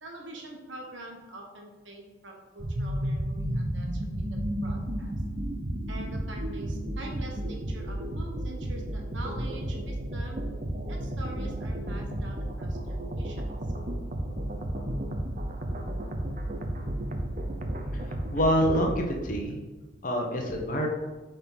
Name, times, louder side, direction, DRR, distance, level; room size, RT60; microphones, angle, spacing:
voice 1, 0.0-4.0 4.3-5.1 5.9-10.4 10.9-13.5, right 2 dB, 75° right, 1 dB, 1.3 m, -44 dB
sound 1, 2.6-19.0, right 1 dB, 40° right, 0.7 m, -32 dB
voice 2, 18.3-19.6 20.0-20.9, equal, 45° left, 1 dB, 1.0 m, -26 dB
8.7 x 3.9 x 4.0 m, 1.2 s
head